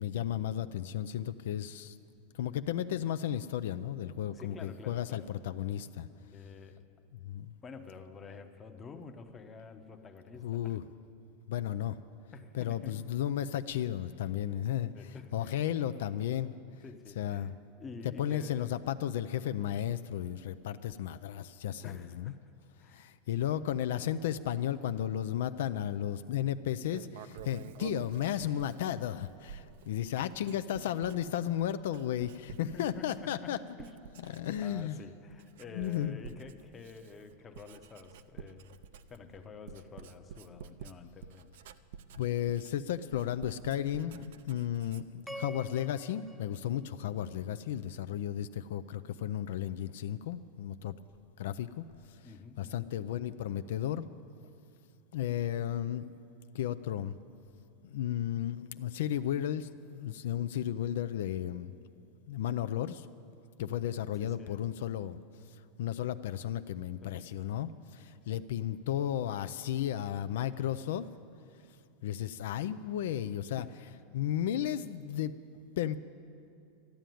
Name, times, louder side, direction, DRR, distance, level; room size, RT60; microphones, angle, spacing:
voice 1, 0.0-1.9 2.3-6.1 7.2-7.5 10.4-10.8 11.5-11.9 12.5-16.5 17.2-17.5 18.2-22.3 22.9-33.6 34.3-35.0 35.7-36.2 42.2-50.9 51.4-51.9 52.6-54.1 55.1-56.2 56.5-57.1 57.8-61.7 62.3-63.1 63.6-65.2 65.8-71.1 72.0-73.6 74.1-75.3 75.8-76.0, left 11 dB, 75° left, 12 dB, 0.4 m, -34 dB
voice 2, 4.3-5.3 6.3-6.8 7.6-10.8 12.3-13.1 14.5-14.6 14.9-15.6 16.8-17.5 17.8-18.8 21.8-22.4 22.8-23.1 23.4-23.6 30.1-30.4 32.7-34.0 34.2-38.8 39.1-41.5 52.2-52.9 64.2-64.6 67.0-67.3 73.6-73.8, left 4 dB, 15° left, 6 dB, 0.8 m, -49 dB
Writing, 26.8-33.5 33.8-35.0 35.3-45.3, right 8 dB, 70° right, 0.5 m, -50 dB
sound 1, 45.3-47.6, right 1 dB, ahead, 0.3 m, -47 dB
13.0 x 10.0 x 9.2 m, 2.5 s
supercardioid pair, 155°, 0 cm